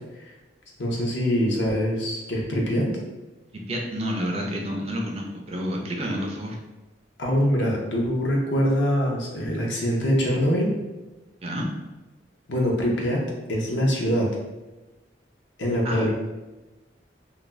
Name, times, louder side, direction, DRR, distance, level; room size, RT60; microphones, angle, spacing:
voice 1, 0.8-2.9 7.2-10.7 12.5-13.2 13.5-14.3 15.6-16.1, equal, 70° left, -2 dB, 0.7 m, -23 dB
voice 2, 3.7-6.6 11.4-11.7 15.8-16.1, equal, 35° right, 0 dB, 0.4 m, -29 dB
2.4 x 2.2 x 3.2 m, 1.1 s
head